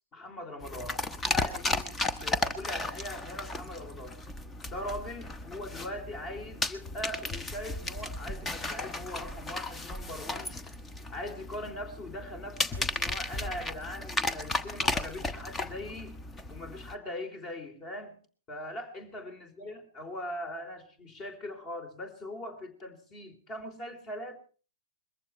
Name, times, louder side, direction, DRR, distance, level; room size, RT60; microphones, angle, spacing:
voice 1, 0.1-4.2 4.7-10.6 11.1-16.2 16.5-18.2 18.5-24.4, left 1 dB, 30° left, 9 dB, 3.5 m, -41 dB
sound 1, 0.6-16.9, left 2 dB, 15° left, 1.0 m, -35 dB
22.0 x 14.5 x 4.4 m, 0.40 s
figure-of-eight pair, 105°, 0 cm